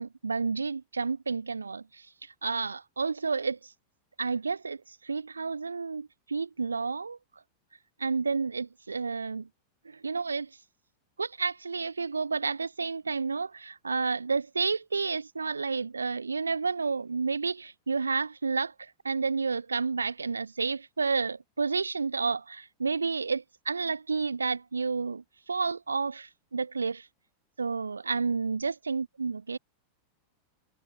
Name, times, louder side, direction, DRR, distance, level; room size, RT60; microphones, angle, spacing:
voice 1, 0.0-2.0 2.4-3.6 4.2-4.8 5.0-7.2 8.0-9.5 9.9-10.5 11.2-27.1 27.6-29.6, right 4 dB, 75° right, 0.4 m, -30 dB
figure-of-eight pair, 90°, 0 cm